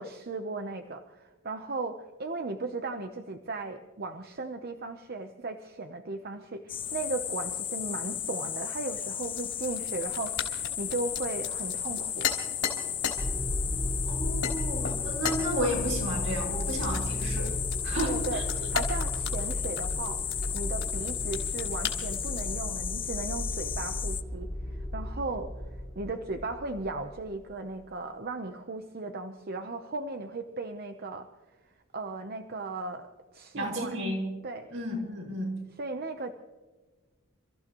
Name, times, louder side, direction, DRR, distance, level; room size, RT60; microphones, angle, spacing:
voice 1, 0.0-12.3 18.0-25.5 25.9-31.3 31.9-34.0 34.4-34.7 35.8-36.3, right 3 dB, 50° right, 6 dB, 0.8 m, -36 dB
sound 1, 6.7-24.2, left 10 dB, 25° left, 0.4 m, -34 dB
sound 2, 9.2-13.2 13.8-14.0 14.4-14.6 14.8-15.4 16.6-22.5, left 7 dB, 65° left, 3.8 m, -36 dB
sound 3, 13.2-27.4, left 1 dB, 5° left, 1.4 m, -35 dB
voice 2, 14.0-17.6 17.8-18.5 33.5-34.3 34.7-35.6, equal, 75° right, -1 dB, 5.8 m, -32 dB
29.0 x 14.5 x 3.1 m, 1.3 s
head